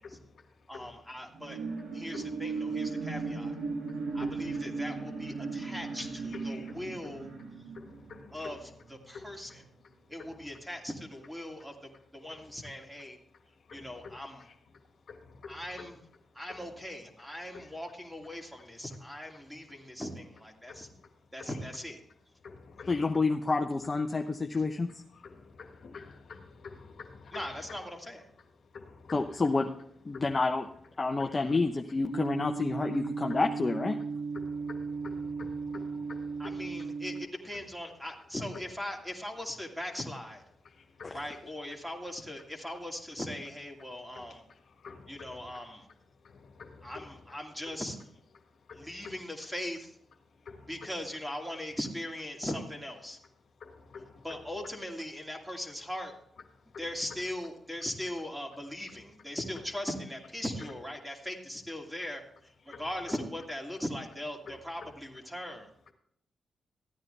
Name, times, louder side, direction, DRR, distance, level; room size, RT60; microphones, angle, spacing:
voice 1, 0.0-3.1 3.6-5.0 5.3-10.7 11.4-12.7 13.1-16.8 17.2-17.8 18.3-18.9 19.3-20.0 20.6-21.8 22.4-23.2 24.2-29.6 30.1-30.4 31.0-31.7 32.8-33.4 34.0-37.2 37.5-38.0 38.5-38.7 40.5-41.4 43.8-47.8 48.3-49.2 50.2-51.1 51.7-51.8 53.1-54.7 55.3-55.7 56.5-57.2 58.0-58.1 58.9-59.6 60.6-61.0 62.6-63.1 64.4-65.0 65.9-66.0, left 4 dB, 70° left, 3 dB, 1.5 m, -51 dB
voice 2, 0.7-1.6 1.9-3.5 4.1-7.3 8.3-8.6 9.1-9.5 10.1-13.2 13.7-14.4 15.5-15.9 16.3-20.9 21.3-22.0 27.3-28.2 36.4-40.4 41.1-44.4 45.1-45.9 46.8-48.0 48.7-50.0 50.7-53.2 54.2-56.1 56.8-65.7, left 1 dB, 5° right, 1 dB, 2.5 m, -39 dB
sound 1, 1.3-9.1 9.5-9.6, right 4 dB, 90° right, 2.0 m, -37 dB
voice 3, 22.9-24.9 29.1-29.7 30.0-30.6 31.0-34.0, left 3 dB, 35° left, 3 dB, 0.8 m, -28 dB
sound 2, 32.1-37.3, right 4 dB, 50° right, 0.4 m, -36 dB
14.5 x 9.6 x 3.3 m, 0.70 s
cardioid pair, 60°, 0 cm